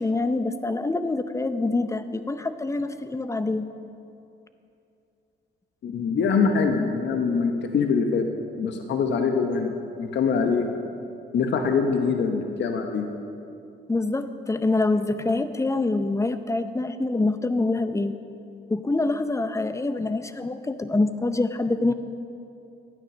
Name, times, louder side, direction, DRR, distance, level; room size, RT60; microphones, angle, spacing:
voice 1, 0.0-3.7 13.9-18.1 18.7-21.9, left 2 dB, 15° left, 10 dB, 0.7 m, -25 dB
voice 2, 5.8-8.2 8.6-10.7 11.3-13.1, left 5 dB, 65° left, 4 dB, 1.1 m, -24 dB
12.5 x 9.1 x 6.3 m, 2.6 s
cardioid pair, 90°, 20 cm